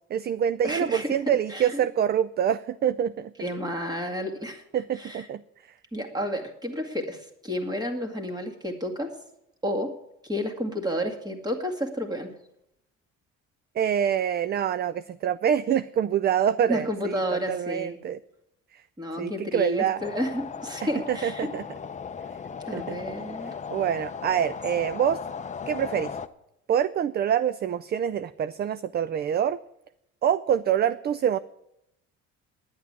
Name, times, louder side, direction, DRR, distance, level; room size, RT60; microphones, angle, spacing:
voice 1, 0.1-3.3 4.7-5.4 13.8-18.2 18.7-18.8 19.2-20.0 21.1-21.6 22.7-23.0 23.7-25.2 25.7-26.2 26.7-29.6 30.2-31.4, right 9 dB, 35° right, 16 dB, 0.4 m, -26 dB
voice 2, 0.6-1.8 3.4-4.6 5.0-5.2 5.9-9.1 9.6-9.9 10.2-12.3 16.7-18.0 19.0-21.5 22.7-23.5, equal, 15° right, 3 dB, 2.1 m, -31 dB
sound 1, 20.0-26.3, left 6 dB, 25° left, 0.6 m, -37 dB
10.5 x 8.5 x 9.5 m, 0.81 s
cardioid pair, 125°, 30 cm